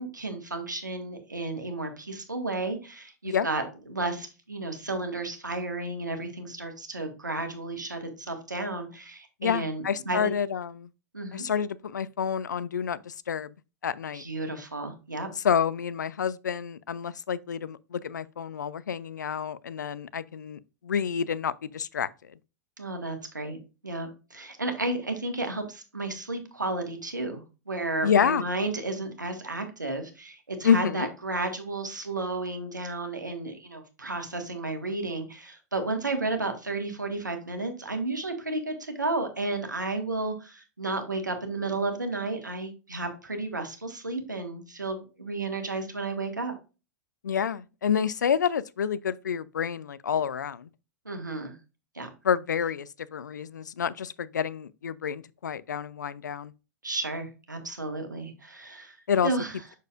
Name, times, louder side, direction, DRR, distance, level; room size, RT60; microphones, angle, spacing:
voice 1, 0.0-3.6 3.9-10.3 11.1-11.4 14.1-15.3 22.8-23.6 23.8-46.5 51.0-51.5 51.9-52.1 56.8-59.0 59.2-59.5, right 2 dB, 90° right, 1.5 m, -32 dB
voice 2, 9.4-10.9 11.3-13.5 13.8-14.2 15.4-22.1 28.0-28.4 30.6-31.1 47.2-50.7 52.2-56.5 59.1-59.3, left 7 dB, 75° left, 0.4 m, -28 dB
6.7 x 6.5 x 2.4 m
figure-of-eight pair, 100°, 10 cm